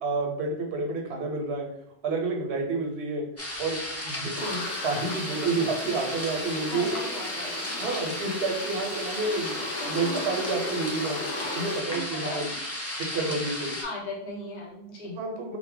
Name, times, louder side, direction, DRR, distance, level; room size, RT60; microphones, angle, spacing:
voice 1, 0.0-1.7 2.0-3.3 3.6-7.0 7.8-11.2 11.5-12.5 13.1-13.8 15.0-15.6, right 3 dB, 90° right, 2 dB, 0.9 m, -29 dB
sound 1, 3.4-13.8, left 1 dB, 25° left, 0.4 m, -34 dB
sound 2, 4.4-11.8, left 2 dB, 90° left, 0.9 m, -37 dB
voice 2, 6.7-7.9 11.9-12.6 13.1-13.4 13.8-15.4, left 1 dB, 50° left, -2 dB, 0.8 m, -38 dB
2.6 x 2.1 x 3.6 m, 0.75 s
omnidirectional pair, 1.1 m